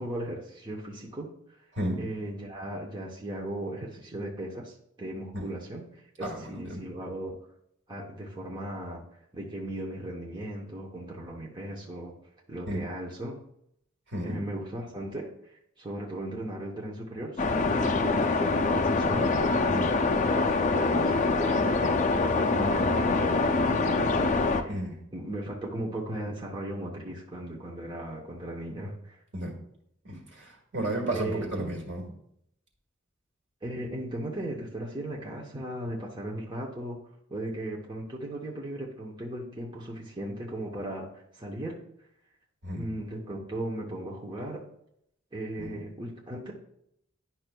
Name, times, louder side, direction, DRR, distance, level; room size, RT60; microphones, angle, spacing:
voice 1, 0.0-1.3 2.0-7.4 7.9-9.0 9.3-12.2 12.5-13.4 14.2-19.6 20.3-24.8 25.1-29.2 31.1-31.8 33.6-37.0 37.3-41.8 42.7-44.6 45.3-46.5, right 1 dB, 25° right, -3 dB, 0.9 m, -37 dB
voice 2, 1.8-2.1 5.3-5.5 6.2-6.9 12.7-12.8 14.1-14.4 19.7-19.9 24.7-24.9 29.3-29.5 30.0-32.1 42.6-42.9 45.6-45.8, right 1 dB, 65° right, 1 dB, 1.8 m, -33 dB
sound 1, 17.4-24.6, left 3 dB, 40° left, 0.5 m, -25 dB
10.5 x 5.6 x 2.2 m, 0.75 s
head